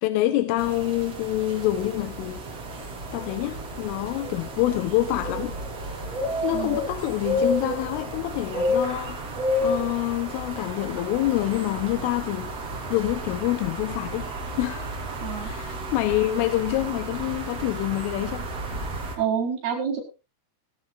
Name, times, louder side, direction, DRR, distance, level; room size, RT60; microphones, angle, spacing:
voice 1, 0.0-2.4 3.1-5.6 6.4-9.4 9.6-12.5 12.9-14.3 14.6-14.9 15.4-18.5, left 15 dB, 90° left, 3.5 m, -26 dB
sound 1, 0.6-19.2, equal, 35° right, 3.9 m, -31 dB
voice 2, 15.2-15.5 19.2-20.0, right 7 dB, 55° right, 6.6 m, -27 dB
17.5 x 17.0 x 2.6 m
omnidirectional pair, 5.6 m